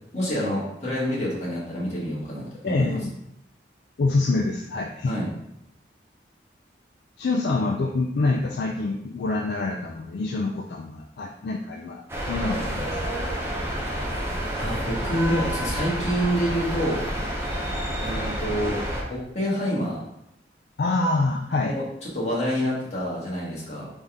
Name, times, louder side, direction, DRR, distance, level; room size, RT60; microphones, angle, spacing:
voice 1, 0.1-3.0 5.1-5.3 14.6-17.0 18.0-18.8 19.1-20.0 21.6-21.8 22.1-23.9, equal, 35° left, -6 dB, 1.6 m, -27 dB
voice 2, 2.6-3.1 4.0-5.1 7.2-13.2 20.8-21.7, left 3 dB, 65° left, 1 dB, 0.4 m, -26 dB
sound 1, 12.1-19.0, equal, 15° right, 0.8 m, -29 dB
4.0 x 3.5 x 3.6 m, 0.80 s
head